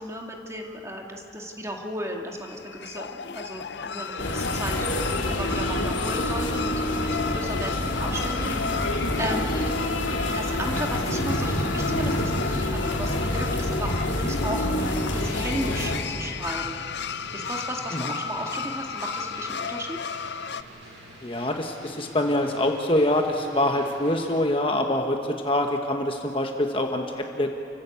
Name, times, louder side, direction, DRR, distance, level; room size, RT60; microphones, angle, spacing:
voice 1, 0.0-4.9 5.3-8.5 9.2-9.6 10.3-14.7 15.1-16.8 17.3-20.0, right 1 dB, 15° right, 1 dB, 2.0 m, -34 dB
sound 1, 2.3-20.6, left 5 dB, 60° left, 0.6 m, -34 dB
sound 2, 4.2-16.0, left 1 dB, 80° left, 3.0 m, -27 dB
sound 3, 6.7-24.4, equal, 75° right, 7.2 m, -46 dB
voice 2, 21.2-27.5, left 1 dB, 25° left, 3 dB, 1.2 m, -25 dB
29.0 x 15.0 x 8.4 m, 2.8 s
head